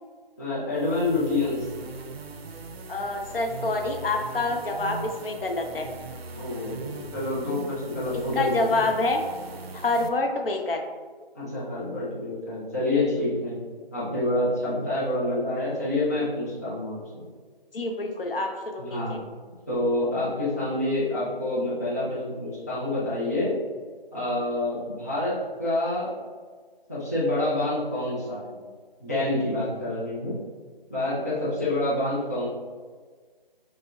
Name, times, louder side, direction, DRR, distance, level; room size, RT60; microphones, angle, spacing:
voice 1, 0.4-1.7 6.4-8.6 11.3-13.6 13.9-17.0 18.8-19.2 19.7-23.5 24.1-26.1 26.9-28.6 29.0-30.4 30.9-32.5, left 2 dB, 15° left, -10 dB, 0.5 m, -27 dB
sound 1, 0.7-10.1, right 4 dB, 85° right, 0.5 m, -40 dB
voice 2, 2.9-5.9 8.3-9.2 9.7-10.8 17.7-19.2 31.6-31.7, left 2 dB, 70° left, 3 dB, 0.6 m, -27 dB
6.1 x 2.1 x 2.3 m, 1.5 s
figure-of-eight pair, 160°, 30 cm